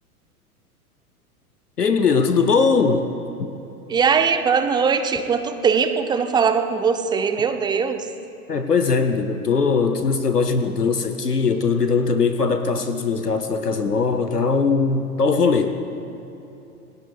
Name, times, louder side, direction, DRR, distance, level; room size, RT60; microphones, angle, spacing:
voice 1, 1.8-3.1 3.4-3.6 8.5-15.8, left 5 dB, 90° left, 9 dB, 0.9 m, -20 dB
voice 2, 3.9-8.1, right 6 dB, 10° right, 8 dB, 0.6 m, -20 dB
27.5 x 19.5 x 2.4 m, 2.9 s
figure-of-eight pair, 100°, 46 cm